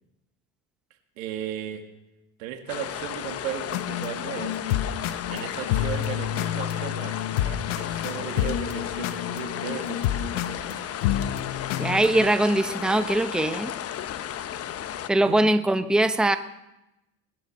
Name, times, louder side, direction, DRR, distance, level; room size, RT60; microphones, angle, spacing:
voice 1, 1.2-1.9 2.4-4.6 5.3-10.9 15.2-15.5, right 10 dB, 90° right, 5 dB, 2.3 m, -36 dB
sound 1, 2.7-15.1, left 10 dB, 35° left, 1.0 m, -34 dB
sound 2, 3.7-12.3, left 11 dB, 75° left, 1.4 m, -29 dB
voice 2, 11.8-13.7 15.1-16.4, right 1 dB, ahead, 9 dB, 0.9 m, -21 dB
20.0 x 10.5 x 6.6 m, 0.90 s
supercardioid pair, 110°, 39 cm